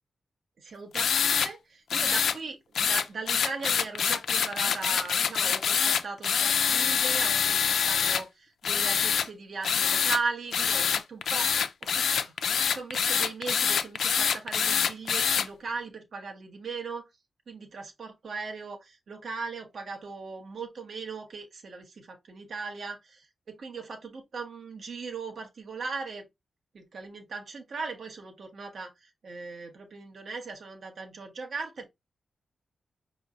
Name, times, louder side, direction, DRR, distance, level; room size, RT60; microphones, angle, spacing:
voice 1, 0.6-17.0 17.5-26.2 26.7-31.9, right 4 dB, 55° right, 1.2 m, -38 dB
sound 1, 0.9-1.5 1.9-2.4 2.8-8.2 8.6-9.3 9.6-10.2 10.5-15.5, left 7 dB, 80° left, 0.4 m, -25 dB
5.2 x 3.1 x 2.5 m
wide cardioid pair, 140°, 0 cm